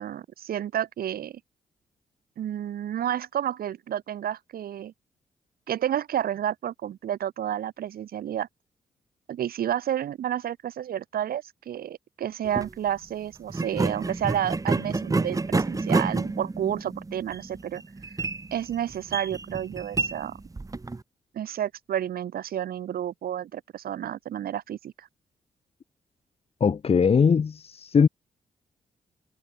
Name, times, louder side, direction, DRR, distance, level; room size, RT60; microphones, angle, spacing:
voice 1, 0.0-1.4 2.4-4.9 5.7-8.5 9.3-17.8 18.5-20.4 21.3-25.1, right 10 dB, 75° right, 4.4 m, -30 dB
sound 1, 12.4-12.7 13.5-21.0, right 3 dB, 20° right, 0.9 m, -29 dB
voice 2, 26.6-28.1, left 6 dB, 40° left, 0.7 m, -20 dB
hypercardioid pair, 40°, 16 cm